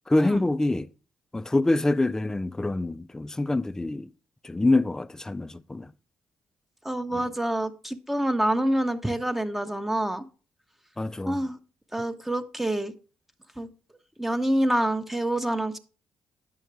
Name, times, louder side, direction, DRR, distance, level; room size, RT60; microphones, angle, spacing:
voice 1, 0.1-0.9 1.3-4.1 4.4-5.9 11.0-11.4, left 2 dB, 15° left, 0.5 m, -25 dB
voice 2, 6.8-10.3 11.3-11.6 11.9-12.9 13.6-13.7 14.2-15.8, right 1 dB, 5° right, 0.8 m, -27 dB
9.1 x 6.4 x 3.3 m
hypercardioid pair, 50°, 4 cm